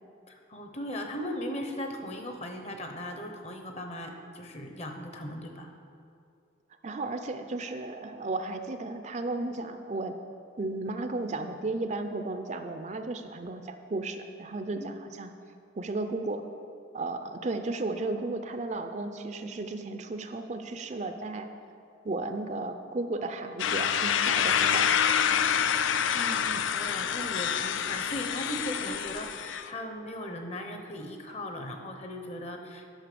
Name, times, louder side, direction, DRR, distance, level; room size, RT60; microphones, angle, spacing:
voice 1, 0.3-5.7 14.8-14.9 26.1-32.8, left 1 dB, 35° left, 4 dB, 0.9 m, -38 dB
voice 2, 6.8-10.1 10.6-15.3 15.8-16.4 16.9-21.5 22.0-24.9, right 2 dB, 40° right, 7 dB, 0.5 m, -34 dB
sound 1, 23.6-29.7, left 8 dB, 85° left, 0.4 m, -27 dB
10.0 x 5.6 x 6.8 m, 2.5 s
head